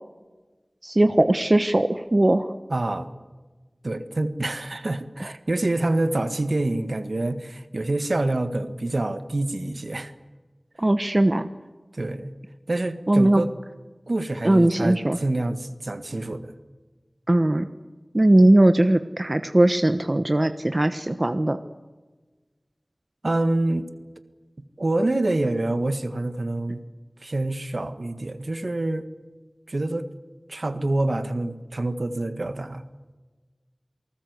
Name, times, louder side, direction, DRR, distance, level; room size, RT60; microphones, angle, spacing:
voice 1, 0.8-2.5 5.2-5.3 10.8-11.5 13.1-13.4 14.4-15.2 17.3-17.7 18.1-21.6, right 1 dB, 40° right, 9 dB, 1.1 m, -19 dB
voice 2, 2.7-3.1 3.8-10.1 11.9-12.3 12.7-13.5 14.1-16.5 23.2-23.9 24.8-26.8 27.2-29.1 29.7-30.1 30.5-32.8, right 2 dB, 70° right, 10 dB, 1.7 m, -26 dB
28.0 x 19.5 x 8.2 m, 1.3 s
wide cardioid pair, 50°, 0 cm